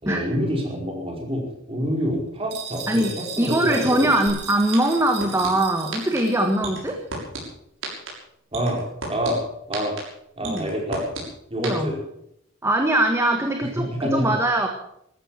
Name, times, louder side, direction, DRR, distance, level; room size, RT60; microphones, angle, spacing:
voice 1, 0.0-4.1 8.5-8.8 9.1-9.4 9.7-9.9 10.4-11.0 11.5-12.0 14.0-14.2, equal, 30° right, 0 dB, 5.1 m, -26 dB
sound 1, 2.5-6.6, right 7 dB, 55° right, 3.5 m, -37 dB
voice 2, 2.9-7.0 10.4-10.7 11.6-11.9 12.6-14.7, right 1 dB, 15° right, 3 dB, 1.5 m, -22 dB
sound 2, 4.3-4.4 4.7-5.5 5.9-6.2 6.6-7.4 7.8-8.1 8.5-9.3 9.7-10.0 10.4-11.2 11.6-11.7, right 5 dB, 80° right, 6.5 m, -31 dB
14.5 x 13.5 x 7.5 m, 0.75 s
head